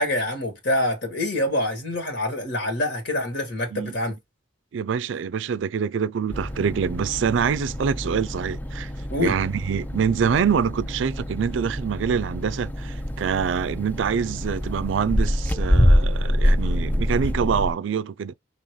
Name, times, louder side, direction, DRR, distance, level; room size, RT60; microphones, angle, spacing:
voice 1, 0.0-4.2 9.1-9.4, left 1 dB, 70° left, 1.8 m, -26 dB
voice 2, 4.7-8.9 9.2-18.3, right 7 dB, 75° right, 0.4 m, -25 dB
sound 1, 6.3-17.7, equal, 10° left, 0.4 m, -25 dB
5.5 x 2.9 x 3.1 m
head